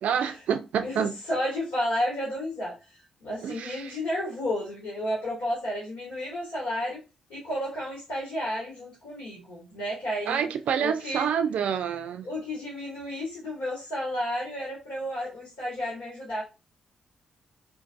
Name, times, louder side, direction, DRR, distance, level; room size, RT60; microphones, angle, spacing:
voice 1, 0.0-1.1 3.4-4.0 10.3-12.3, right 8 dB, 70° right, 0.4 m, -28 dB
voice 2, 0.8-7.0 7.3-10.5 10.8-11.3 12.2-16.4, left 1 dB, 80° left, 1.8 m, -32 dB
3.7 x 2.5 x 2.5 m
hypercardioid pair, 45°, 2 cm